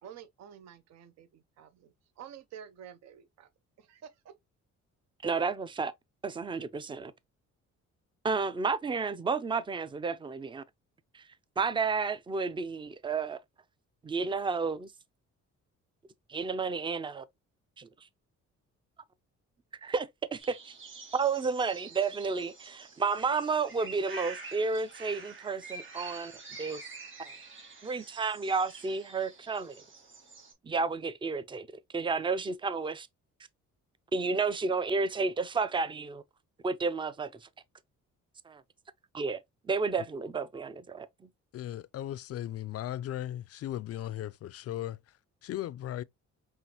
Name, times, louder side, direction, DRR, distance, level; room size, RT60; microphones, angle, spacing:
voice 1, 0.0-3.5 3.8-4.3, right 9 dB, 60° right, 0.6 m, -50 dB
voice 2, 5.2-5.9 6.2-7.1 8.2-10.6 11.1-11.2 11.6-13.4 14.0-14.9 16.3-17.2 17.8-17.9 19.8-20.7 21.1-26.3 26.6-26.8 27.2-27.3 27.8-29.8 30.6-31.7 31.9-33.1 34.1-36.2 36.6-37.5 38.5-38.6 39.1-39.4 39.7-41.1, right 4 dB, 15° right, 0.4 m, -31 dB
sound 1, 20.4-30.5, right 4 dB, 40° right, 2.1 m, -47 dB
voice 3, 41.5-46.0, left 12 dB, 55° left, 0.4 m, -37 dB
5.6 x 2.5 x 2.8 m
cardioid pair, 90°, 30 cm